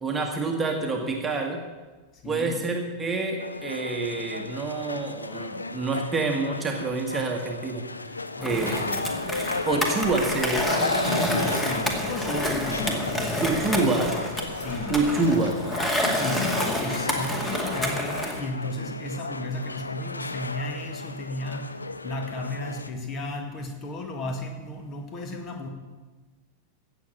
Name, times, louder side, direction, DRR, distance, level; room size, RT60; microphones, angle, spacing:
voice 1, 0.0-1.6 2.2-7.9 8.4-8.9 9.6-10.7 13.4-14.2 14.9-15.7, right 3 dB, 15° right, 1 dB, 1.6 m, -27 dB
voice 2, 2.1-2.6 8.4-9.0 11.1-14.0 14.5-15.0 16.1-25.7, left 2 dB, 30° left, 4 dB, 2.2 m, -34 dB
sound 1, 3.4-22.9, left 3 dB, 80° left, 0.6 m, -34 dB
Skateboard, 8.4-18.4, equal, 10° left, 2.3 m, -29 dB
16.5 x 7.2 x 7.7 m, 1.3 s
figure-of-eight pair, 90°, 0 cm